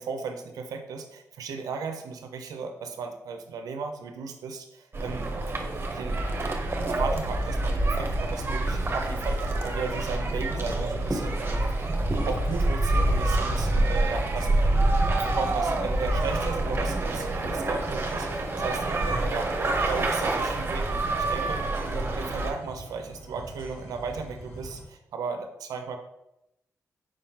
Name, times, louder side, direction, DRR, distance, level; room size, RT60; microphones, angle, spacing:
voice 1, 0.0-5.3 5.7-11.9 12.2-14.7 15.1-19.5 19.9-26.0, right 5 dB, 85° right, 5 dB, 0.5 m, -36 dB
sound 1, 4.9-22.5, right 2 dB, 40° right, 0.8 m, -27 dB
sound 2, 10.5-24.8, equal, 75° left, 1.5 m, -43 dB
4.9 x 3.6 x 2.7 m, 0.86 s
cardioid pair, 65°, 6 cm